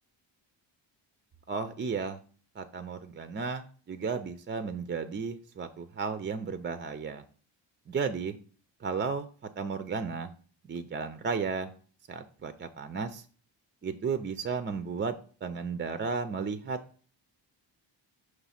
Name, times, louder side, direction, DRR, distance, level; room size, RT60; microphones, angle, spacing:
voice 1, 1.5-2.2 2.6-7.2 7.9-8.4 8.8-9.3 9.6-10.3 10.7-11.7 12.1-13.2 13.8-15.2 15.4-16.8, right 5 dB, 25° right, 10 dB, 0.4 m, -34 dB
6.1 x 3.2 x 5.6 m, 0.41 s
cardioid pair, 115°, 45 cm